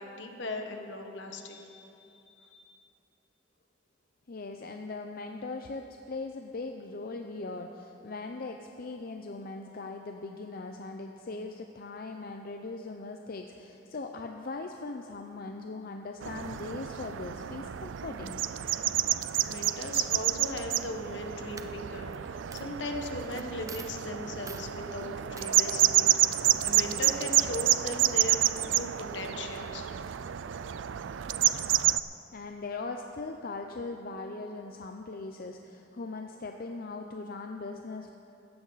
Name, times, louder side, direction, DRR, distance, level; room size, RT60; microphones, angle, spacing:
voice 1, 0.0-2.8 19.4-28.5 28.7-29.9, left 2 dB, 75° left, 3 dB, 1.3 m, -38 dB
voice 2, 4.3-18.4 32.3-38.2, left 3 dB, 50° left, 4 dB, 0.6 m, -40 dB
sound 1, 16.2-32.0, right 13 dB, 85° right, 0.4 m, -29 dB
Coin (dropping), 20.9-21.2 21.6-22.2 22.5-22.6 23.4-23.5 23.7-24.0 24.5-24.7 25.4-25.5, right 5 dB, 20° right, 0.6 m, -45 dB
16.5 x 13.5 x 4.1 m, 2.8 s
head